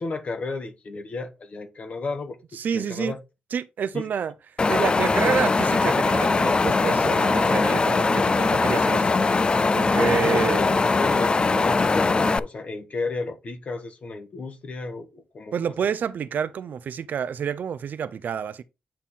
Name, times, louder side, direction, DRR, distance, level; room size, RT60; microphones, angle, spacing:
voice 1, 0.0-3.2 3.9-4.0 10.0-12.1 12.4-15.5, left 3 dB, 50° left, 1.5 m, -32 dB
voice 2, 2.5-3.1 3.5-4.3 4.7-9.1 9.7-10.7 15.5-18.6, right 7 dB, 70° right, 0.6 m, -28 dB
Wind, 4.6-12.4, left 3 dB, 30° left, 0.4 m, -21 dB
8.7 x 4.2 x 3.7 m
cardioid pair, 100°, 3 cm